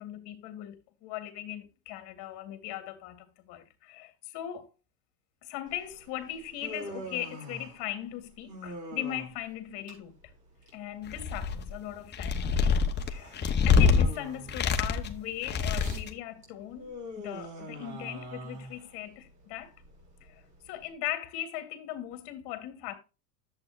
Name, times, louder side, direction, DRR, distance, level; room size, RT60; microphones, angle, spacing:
voice 1, 0.0-4.7 5.4-10.1 10.7-12.8 13.1-19.7 20.2-22.9, left 12 dB, 50° left, 2.0 m, -39 dB
Human voice, 5.7-20.9, right 1 dB, 35° right, 4.2 m, -45 dB
sound 1, 11.1-11.7 12.1-14.0 14.5-15.1 15.4-16.1, left 5 dB, 20° left, 0.8 m, -25 dB
10.5 x 7.9 x 2.5 m
supercardioid pair, 120°, 50 cm